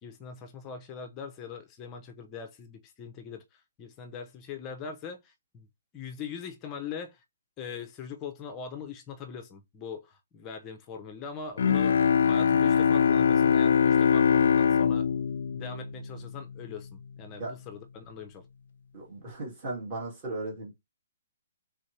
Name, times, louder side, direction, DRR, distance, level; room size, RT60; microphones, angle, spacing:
voice 1, 0.0-5.7 5.9-7.2 7.6-15.0 15.5-18.5, left 6 dB, 15° left, 0.7 m, -41 dB
Bowed string instrument, 11.6-16.7, left 7 dB, 55° left, 0.3 m, -23 dB
voice 2, 18.9-20.7, right 2 dB, 20° right, 2.1 m, -36 dB
4.2 x 3.7 x 3.3 m
hypercardioid pair, 180°, 0 cm